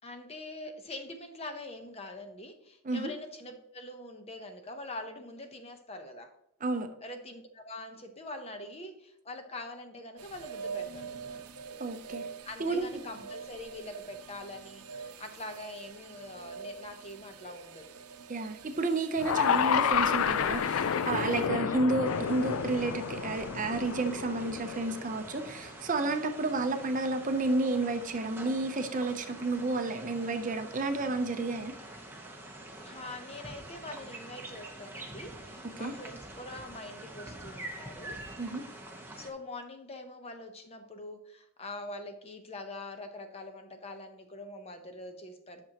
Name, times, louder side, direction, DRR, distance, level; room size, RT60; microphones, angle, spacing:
voice 1, 0.0-6.3 7.0-11.4 12.4-17.9 21.3-21.7 32.8-38.2 39.2-45.6, left 2 dB, 25° left, 6 dB, 0.8 m, -44 dB
sound 1, 10.2-21.5, right 5 dB, 85° right, 0.7 m, -45 dB
voice 2, 11.8-12.2 12.6-12.9 18.3-31.7 35.8-35.9 38.4-38.6, right 2 dB, 35° right, 7 dB, 0.6 m, -31 dB
sound 2, 19.2-25.4, left 7 dB, 70° left, 0.4 m, -30 dB
sound 3, 22.0-39.3, right 1 dB, 10° right, 0.8 m, -46 dB
10.5 x 6.1 x 2.9 m, 0.80 s
head